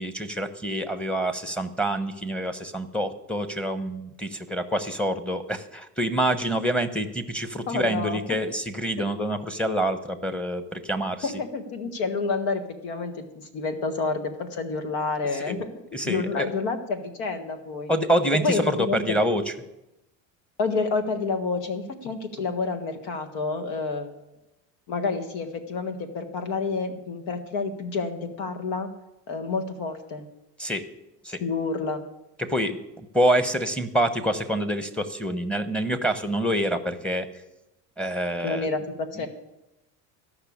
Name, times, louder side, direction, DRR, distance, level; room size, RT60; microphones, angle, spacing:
voice 1, 0.0-11.3 15.5-15.6 15.9-16.5 17.9-19.5 30.6-30.8 31.2-31.4 32.4-32.8 33.1-37.3 38.0-38.7 39.2-39.3, right 1 dB, 5° left, 8 dB, 1.0 m, -26 dB
voice 2, 7.7-8.2 11.2-13.3 13.5-15.7 16.0-17.9 18.4-19.2 20.6-24.1 24.9-28.9 29.3-30.3 31.4-32.0 38.4-39.3, left 4 dB, 80° left, 9 dB, 1.7 m, -29 dB
13.5 x 5.9 x 8.6 m, 0.94 s
supercardioid pair, 100°, 39 cm